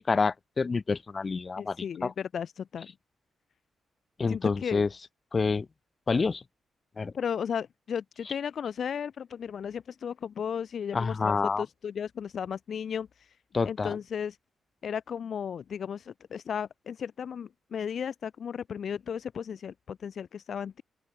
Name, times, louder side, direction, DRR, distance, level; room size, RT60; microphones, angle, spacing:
voice 1, 0.0-1.8 2.0-2.1 4.2-4.9 5.3-5.7 6.1-6.4 7.0-7.1 10.9-11.6 13.5-14.0, left 4 dB, 30° left, 6.3 m, -27 dB
voice 2, 1.6-2.9 4.3-4.8 7.1-13.3 13.6-14.4 14.8-20.8, left 7 dB, 55° left, 3.3 m, -35 dB
open air
cardioid pair, 125°, 0 cm